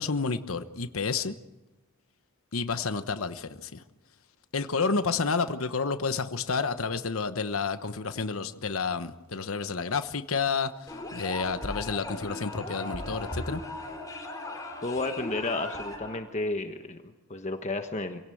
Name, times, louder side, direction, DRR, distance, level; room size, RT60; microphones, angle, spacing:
voice 1, 0.0-1.3 2.5-3.8 4.5-10.7 11.1-13.6, left 4 dB, 85° left, 10 dB, 1.1 m, -30 dB
sound 1, 10.9-16.2, left 1 dB, 15° left, 4.2 m, -37 dB
voice 2, 14.8-18.2, left 2 dB, 35° left, 6 dB, 1.2 m, -32 dB
27.0 x 17.5 x 7.9 m, 1.1 s
head